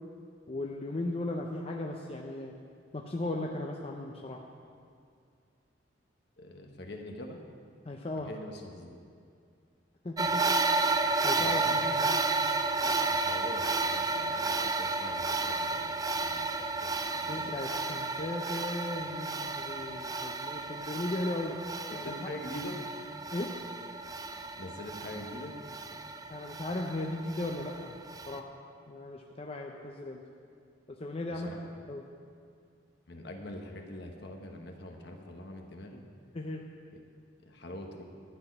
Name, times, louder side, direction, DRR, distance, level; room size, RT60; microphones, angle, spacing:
voice 1, 0.5-2.5 2.9-4.4 7.9-8.3 10.0-10.6 11.2-11.7 17.3-21.6 21.9-22.1 23.3-23.5 26.3-27.9 28.3-28.4 28.9-30.2 30.9-31.5 31.9-32.0 36.3-36.6, left 2 dB, 30° left, 1 dB, 0.6 m, -36 dB
voice 2, 6.4-7.4 8.2-9.0 11.4-12.1 12.8-16.5 16.8-17.5 21.9-22.8 24.6-25.5 31.3-31.6 33.1-36.0 37.4-38.0, left 1 dB, 60° left, 3 dB, 1.3 m, -44 dB
sound 1, 10.2-28.4, right 3 dB, 20° right, 0.4 m, -32 dB
12.0 x 6.0 x 8.7 m, 2.3 s
head